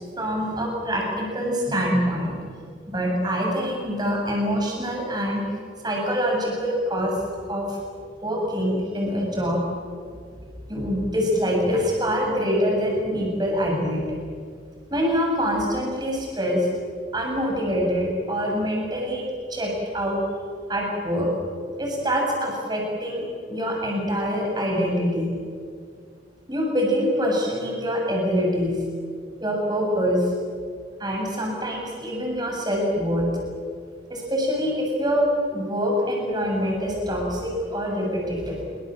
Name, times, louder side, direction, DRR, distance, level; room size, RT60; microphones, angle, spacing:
voice 1, 0.2-2.4 2.9-5.4 5.8-7.1 7.5-7.8 8.2-9.6 10.4-14.0 14.9-16.7 17.1-19.2 19.5-20.2 20.7-21.3 21.8-23.2 23.5-25.3 26.5-28.8 29.4-30.3 31.0-33.3 34.1-38.6, equal, 20° right, -1 dB, 7.1 m, -25 dB
26.5 x 24.5 x 7.7 m, 2.1 s
head